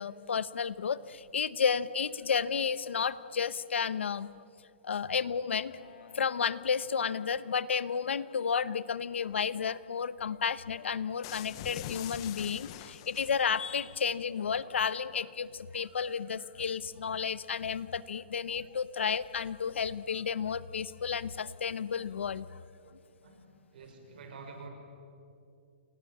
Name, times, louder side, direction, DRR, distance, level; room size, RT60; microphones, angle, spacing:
voice 1, 0.0-4.3 4.8-5.8 6.1-22.5, left 6 dB, 90° left, 17 dB, 0.9 m, -32 dB
Wind instrument woodwind instrument, 5.7-10.2 10.7-15.4, left 2 dB, 75° left, 6.4 m, -58 dB
sound 1, 11.2-13.7, left 14 dB, 30° left, 0.7 m, -44 dB
voice 2, 23.2-24.7, right 4 dB, 50° right, 4 dB, 5.7 m, -48 dB
30.0 x 22.5 x 7.4 m, 2.7 s
hypercardioid pair, 170°, 6 cm